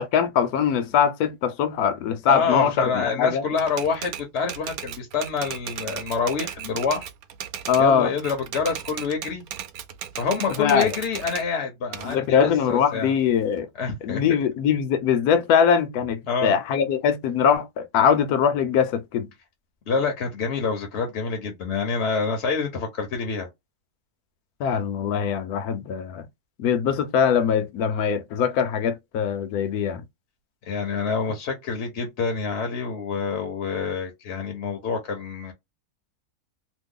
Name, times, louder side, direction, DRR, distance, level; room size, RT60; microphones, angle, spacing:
voice 1, 0.0-3.4 7.7-8.1 10.6-10.9 12.0-13.7 14.0-19.3 24.6-26.3 26.6-30.0, left 7 dB, 75° left, 1.1 m, -22 dB
voice 2, 2.3-7.1 7.8-9.4 10.2-13.1 13.8-14.2 16.3-16.5 19.9-23.5 30.6-35.5, left 5 dB, 55° left, 0.9 m, -27 dB
Typewriter, 3.6-7.9 8.2-11.5 11.9-13.6, right 9 dB, 70° right, 1.0 m, -36 dB
3.0 x 2.1 x 3.6 m
omnidirectional pair, 1.7 m